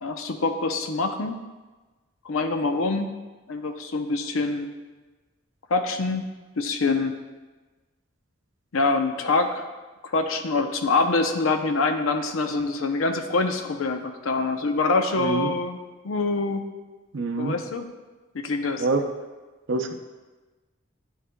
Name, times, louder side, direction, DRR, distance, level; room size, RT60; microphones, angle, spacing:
voice 1, 0.0-1.4 2.2-3.1 3.5-4.7 5.7-6.3 6.6-7.2 8.7-9.7 10.1-15.8 16.0-16.6 17.4-17.9 18.3-18.9, left 3 dB, 85° left, 6 dB, 0.6 m, -25 dB
voice 2, 15.2-15.5 17.1-17.6 18.8-19.1 19.7-19.9, right 3 dB, 65° right, 6 dB, 0.5 m, -25 dB
10.5 x 4.7 x 2.2 m, 1.2 s
head